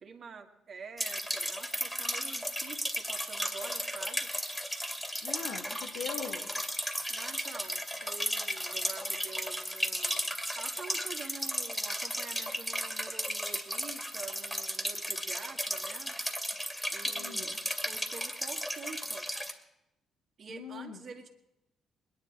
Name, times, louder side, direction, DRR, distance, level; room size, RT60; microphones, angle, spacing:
voice 1, 0.0-4.3 7.1-16.2 16.9-17.5 17.9-19.3 20.4-21.3, right 5 dB, 55° right, 4 dB, 2.0 m, -47 dB
sound 1, 1.0-19.5, equal, 10° left, 2.3 m, -35 dB
voice 2, 5.2-6.5 17.1-17.6 20.5-21.0, left 7 dB, 85° left, 3 dB, 1.9 m, -41 dB
21.0 x 10.5 x 4.8 m, 0.87 s
supercardioid pair, 55°, 0 cm